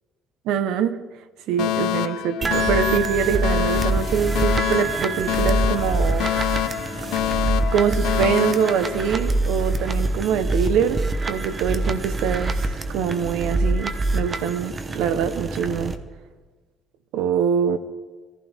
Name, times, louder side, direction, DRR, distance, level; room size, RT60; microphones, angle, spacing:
voice 1, 0.4-1.0 1.5-6.3 7.7-15.9 17.1-17.8, right 7 dB, 80° right, 0.9 m, -24 dB
Alarm, 1.6-9.6, left 14 dB, 85° left, 0.5 m, -26 dB
sound 1, 2.4-15.9, right 2 dB, 20° right, 0.8 m, -25 dB
24.0 x 15.0 x 3.6 m
cardioid pair, 175°, 0 cm